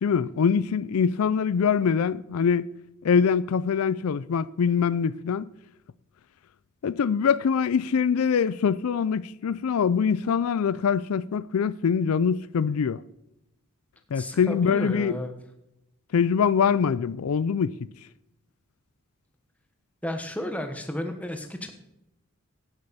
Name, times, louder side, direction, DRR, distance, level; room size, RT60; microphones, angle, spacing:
voice 1, 0.0-2.7 3.0-5.5 6.8-13.0 14.1-15.2 16.1-17.8, left 6 dB, 85° left, 0.4 m, -23 dB
voice 2, 14.1-15.3 20.0-21.7, left 1 dB, 5° left, 1.2 m, -33 dB
11.5 x 9.7 x 4.2 m
head